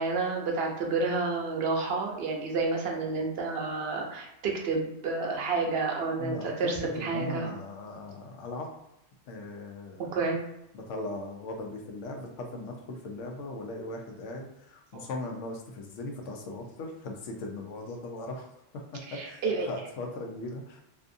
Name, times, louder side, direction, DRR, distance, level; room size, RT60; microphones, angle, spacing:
voice 1, 0.0-7.5 10.0-10.4 14.9-15.0 19.1-19.7, right 3 dB, 65° right, 0 dB, 0.8 m, -30 dB
voice 2, 6.2-8.7 9.3-10.3 10.7-18.5 18.9-20.8, left 2 dB, 85° left, 2 dB, 0.9 m, -39 dB
2.6 x 2.4 x 2.5 m, 0.83 s
omnidirectional pair, 1.2 m